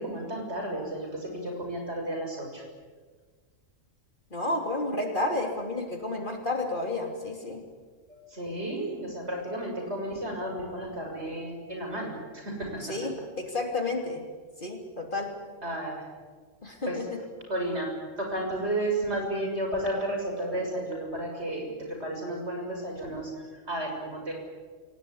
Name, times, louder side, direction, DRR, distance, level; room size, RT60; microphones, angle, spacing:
voice 1, 0.0-2.6 8.1-12.8 15.6-16.0 16.8-17.0 17.5-17.9 18.2-24.3, right 1 dB, 55° right, 2 dB, 6.9 m, -32 dB
voice 2, 4.3-7.6 12.8-14.2 14.6-15.3 16.6-17.2, left 2 dB, 40° left, 2 dB, 3.3 m, -31 dB
28.0 x 18.0 x 9.9 m, 1.5 s
omnidirectional pair, 1.4 m